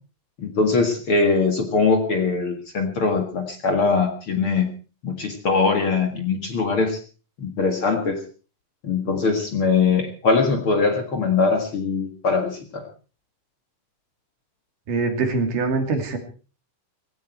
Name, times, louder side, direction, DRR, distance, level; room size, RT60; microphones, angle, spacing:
voice 1, 0.4-4.7 5.0-7.0 7.4-8.2 8.8-12.9, left 4 dB, 45° left, 5 dB, 2.3 m, -22 dB
voice 2, 14.9-16.2, right 4 dB, 65° right, 5 dB, 4.1 m, -23 dB
18.0 x 16.5 x 4.5 m, 0.37 s
omnidirectional pair, 4.0 m